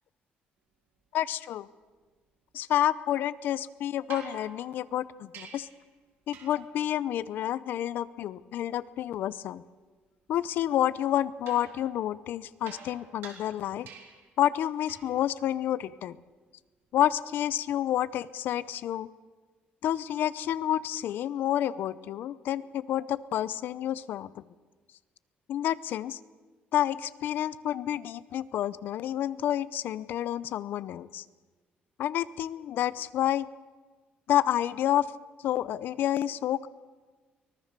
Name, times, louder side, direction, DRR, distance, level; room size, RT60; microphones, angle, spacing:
voice 1, 1.1-1.7 2.5-5.7 6.3-9.6 10.3-13.9 14.4-16.2 16.9-19.1 19.8-24.4 25.5-26.2 26.7-31.2 32.0-33.5 34.3-35.1 35.4-36.7, left 11 dB, 65° left, 17 dB, 0.7 m, -29 dB
sound 1, 4.1-5.9 6.3-6.8 11.5-14.3 14.9-15.2 17.2-17.3, right 6 dB, 80° right, 3.6 m, -48 dB
24.0 x 19.0 x 6.8 m, 1.4 s
cardioid pair, 150°, 4 cm